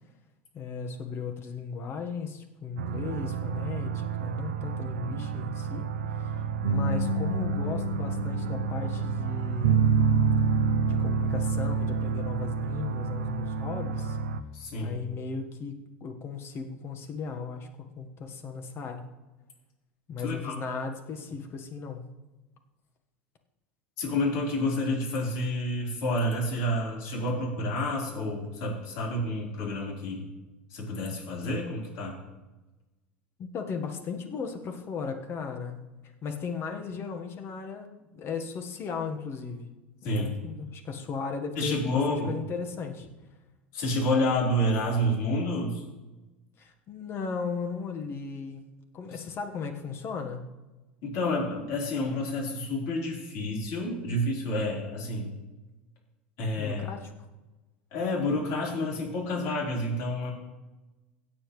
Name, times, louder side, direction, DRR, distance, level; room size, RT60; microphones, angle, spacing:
voice 1, 0.5-9.9 10.9-14.2 14.8-17.7 17.9-19.0 20.1-22.1 33.4-35.8 36.2-39.7 40.0-43.1 46.6-48.7 48.9-50.5 56.6-57.1, left 5 dB, 40° left, 5 dB, 1.5 m, -36 dB
sound 1, 2.8-14.4, right 5 dB, 85° right, 0.6 m, -28 dB
voice 2, 14.5-15.0 20.2-20.6 24.0-30.2 30.7-32.1 40.0-40.4 41.6-42.4 43.7-45.8 51.0-55.3 56.4-56.8 57.9-60.3, left 1 dB, 60° left, -3 dB, 4.3 m, -29 dB
16.5 x 7.7 x 3.3 m, 1.1 s
hypercardioid pair, 85°, 6 cm